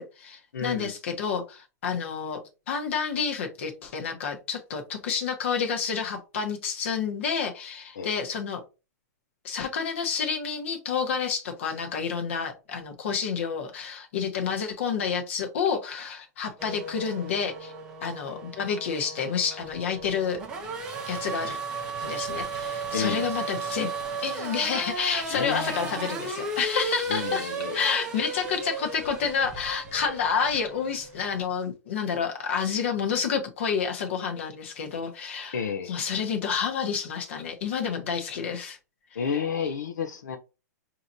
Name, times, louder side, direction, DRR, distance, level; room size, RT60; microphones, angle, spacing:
voice 1, 0.0-2.4 2.7-8.6 9.4-17.7 18.0-20.4 21.1-21.6 22.0-23.9 24.2-38.8 39.1-39.4, left 6 dB, 45° left, 1.1 m, -29 dB
voice 2, 0.5-0.9 8.0-8.1 22.9-23.3 25.3-25.9 27.1-27.8 35.5-36.0 39.2-40.4, left 6 dB, 75° left, 0.7 m, -31 dB
Race car auto racing / Accelerating revving vroom, 16.6-31.4, right 3 dB, 10° right, 0.4 m, -35 dB
6.5 x 2.9 x 2.6 m
hypercardioid pair, 180°, 10 cm